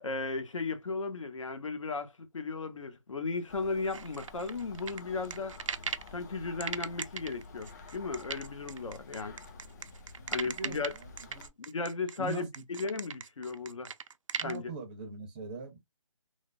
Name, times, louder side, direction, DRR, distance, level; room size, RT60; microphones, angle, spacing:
voice 1, 0.0-5.6 6.1-9.4 10.3-10.9 11.6-13.9 14.4-14.7, left 4 dB, 75° left, 0.8 m, -35 dB
sound 1, 3.5-11.5, left 3 dB, 35° left, 0.5 m, -51 dB
sound 2, 3.9-6.1 6.6-14.6, right 6 dB, 80° right, 0.4 m, -39 dB
voice 2, 10.2-11.5 12.2-12.4 14.3-15.8, right 5 dB, 15° right, 0.5 m, -42 dB
3.2 x 2.0 x 2.3 m
figure-of-eight pair, 155°, 16 cm